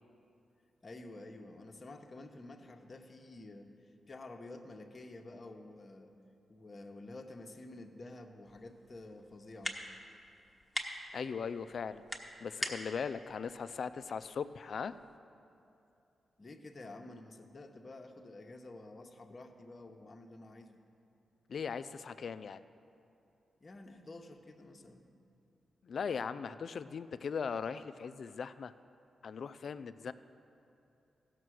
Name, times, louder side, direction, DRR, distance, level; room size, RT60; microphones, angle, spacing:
voice 1, 0.8-6.1 6.5-9.8 16.4-20.8 23.6-25.1, left 2 dB, 35° left, 3 dB, 0.9 m, -50 dB
sound 1, 8.4-15.2, left 1 dB, 5° left, 1.2 m, -45 dB
voice 2, 11.1-12.0 12.4-14.9 21.5-22.6 25.8-28.7 29.2-30.1, left 6 dB, 60° left, 13 dB, 0.4 m, -39 dB
15.5 x 6.7 x 6.3 m, 2.8 s
cardioid pair, 80°, 0 cm